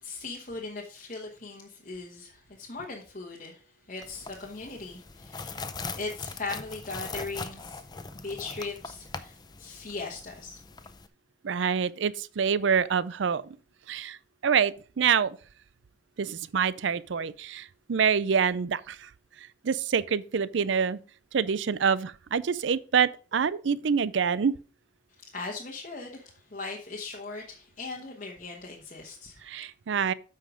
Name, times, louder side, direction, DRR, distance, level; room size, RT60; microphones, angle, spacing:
voice 1, 0.0-3.6 3.9-5.6 6.0-7.8 8.1-10.6 25.3-29.5, left 3 dB, 40° left, 1.1 m, -39 dB
sound 1, 4.0-11.1, left 4 dB, 20° left, 0.5 m, -41 dB
voice 2, 11.4-13.4 13.9-14.2 14.4-15.4 16.2-19.1 19.6-21.0 21.3-24.5 29.4-30.1, right 6 dB, 75° right, 0.5 m, -26 dB
8.2 x 5.7 x 4.9 m
head